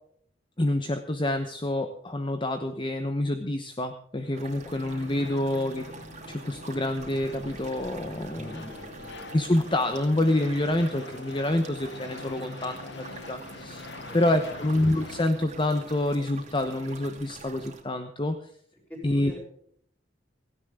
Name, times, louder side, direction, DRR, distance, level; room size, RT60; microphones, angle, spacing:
voice 1, 0.6-5.9 6.3-8.7 9.3-13.9 14.1-18.4 19.0-19.3, left 1 dB, 25° left, 8 dB, 1.0 m, -27 dB
sound 1, 4.2-15.2, left 3 dB, 65° left, 1.1 m, -44 dB
sound 2, 4.3-17.8, right 3 dB, 35° right, 2.7 m, -45 dB
voice 2, 8.3-9.1 14.1-14.2 14.5-14.7 18.9-19.4, left 1 dB, 10° left, -1 dB, 6.8 m, -44 dB
17.0 x 16.5 x 3.7 m, 0.63 s
head